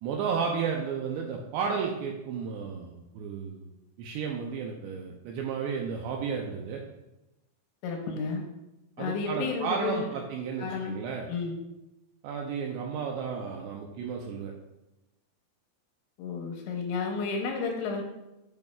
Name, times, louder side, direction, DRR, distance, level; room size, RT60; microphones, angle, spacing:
voice 1, 0.0-3.7 4.0-6.8 9.0-11.3 12.2-14.5, right 6 dB, 85° right, 0 dB, 2.5 m, -33 dB
voice 2, 7.8-8.4 9.0-10.1 10.6-11.0 11.3-11.6 16.2-18.0, left 4 dB, 80° left, 2 dB, 2.8 m, -32 dB
7.9 x 7.0 x 2.4 m, 0.96 s
omnidirectional pair, 5.5 m